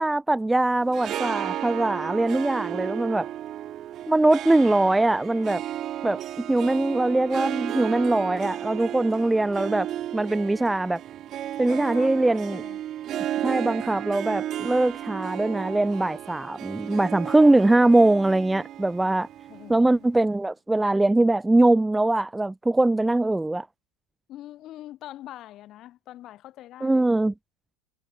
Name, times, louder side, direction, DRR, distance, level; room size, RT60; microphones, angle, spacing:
voice 1, 0.0-3.3 4.1-5.6 6.0-9.9 10.1-11.0 11.6-12.6 13.4-19.3 19.7-23.7 26.8-27.3, right 2 dB, 5° right, 1.1 m, -22 dB
Harp, 0.8-20.2, right 12 dB, 40° right, 7.4 m, -34 dB
voice 2, 11.6-12.1 12.5-12.8 13.5-13.9 19.5-20.1 24.3-27.1, left 13 dB, 40° left, 7.2 m, -44 dB
supercardioid pair, 115°, 0 cm